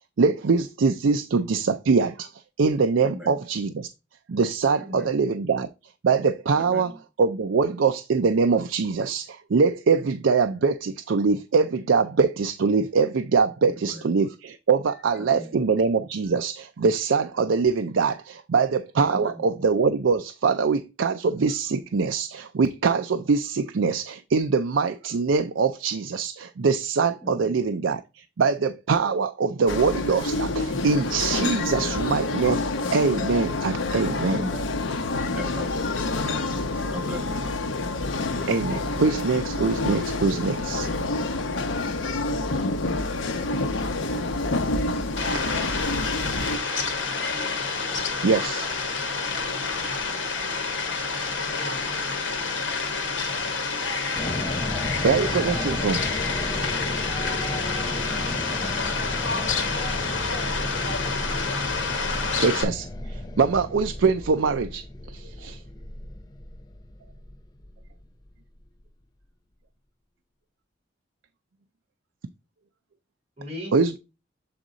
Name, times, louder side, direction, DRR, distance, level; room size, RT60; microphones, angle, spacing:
voice 1, 0.2-3.9 4.3-5.7 6.0-34.4 38.5-40.9 48.2-48.7 52.9-53.1 54.6-56.0 62.4-65.6 73.7-74.0, right 4 dB, 75° right, 0.5 m, -23 dB
voice 2, 3.0-3.3 4.8-5.1 6.5-6.9 13.8-14.0 15.2-15.5 19.1-19.5 27.2-27.6 34.3-34.7 35.3-35.9 36.2-36.5 36.9-37.7, equal, 5° right, 1.4 m, -37 dB
sound 1, 29.7-46.6, left 2 dB, 90° left, 0.8 m, -28 dB
Fowl, 45.2-62.6, left 4 dB, 70° left, 1.6 m, -28 dB
voice 3, 51.6-52.6 73.4-73.7, left 1 dB, 35° right, 4.3 m, -42 dB
sound 2, 54.2-68.4, left 1 dB, 20° left, 0.6 m, -34 dB
7.7 x 3.6 x 3.9 m
head